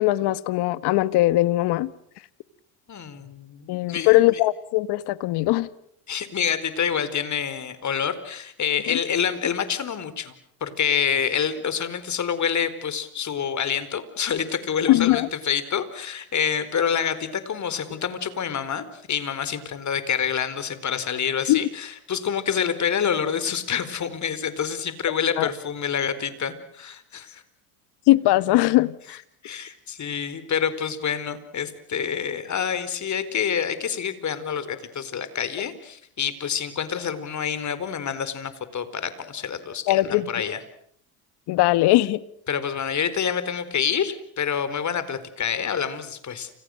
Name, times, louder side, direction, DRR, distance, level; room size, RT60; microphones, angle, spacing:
voice 1, 0.0-1.9 3.7-5.7 14.9-15.3 21.5-21.6 25.4-25.5 28.1-29.2 39.9-40.3 41.5-42.2, left 17 dB, 65° left, 1.6 m, -20 dB
voice 2, 2.9-4.4 6.1-10.3 10.6-27.4 29.4-40.6 42.5-46.5, left 7 dB, 40° left, 4.5 m, -27 dB
30.0 x 27.5 x 6.6 m
supercardioid pair, 85°, 43 cm